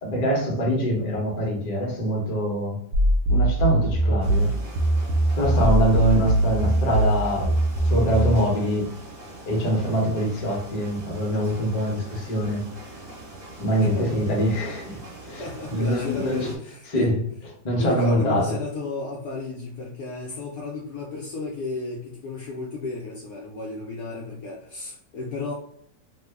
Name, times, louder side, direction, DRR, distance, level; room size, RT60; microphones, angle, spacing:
voice 1, 0.0-2.8 3.3-4.5 5.4-7.5 7.8-8.9 9.5-12.6 13.6-15.0 15.3-16.5 16.9-17.2 17.6-18.4, equal, 35° left, -2 dB, 0.6 m, -24 dB
sound 1, 2.9-8.4, right 1 dB, 70° right, 0.9 m, -21 dB
sound 2, 4.2-16.6, right 2 dB, 30° right, 1.3 m, -42 dB
voice 2, 13.8-14.1 15.4-17.1 17.8-25.5, left 3 dB, 70° left, -1 dB, 0.9 m, -33 dB
3.0 x 2.1 x 3.3 m, 0.68 s
omnidirectional pair, 1.9 m